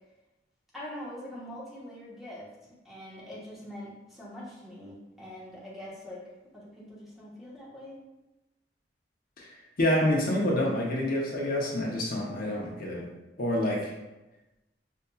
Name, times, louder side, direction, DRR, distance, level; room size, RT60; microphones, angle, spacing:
voice 1, 0.7-2.5 2.8-6.2 6.5-8.0, left 1 dB, ahead, -8 dB, 1.0 m, -43 dB
voice 2, 9.8-13.1 13.4-13.9, left 1 dB, 55° left, -3 dB, 0.7 m, -27 dB
5.4 x 2.6 x 2.2 m, 1.0 s
head